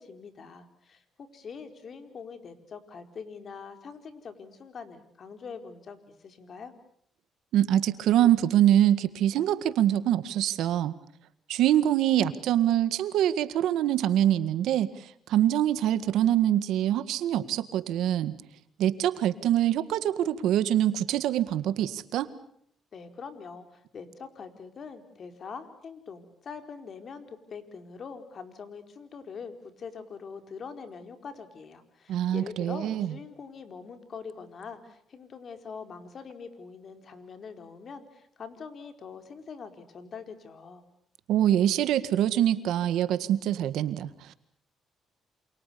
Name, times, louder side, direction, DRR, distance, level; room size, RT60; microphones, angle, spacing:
voice 1, 0.0-6.7 22.9-40.8, left 5 dB, 50° left, 8 dB, 4.4 m, -43 dB
voice 2, 7.5-10.9 11.5-14.9 15.3-18.3 18.8-22.3 32.1-33.1 41.3-44.3, right 11 dB, 85° right, 13 dB, 1.8 m, -24 dB
28.5 x 27.5 x 6.9 m, 0.67 s
cardioid pair, 90°, 0 cm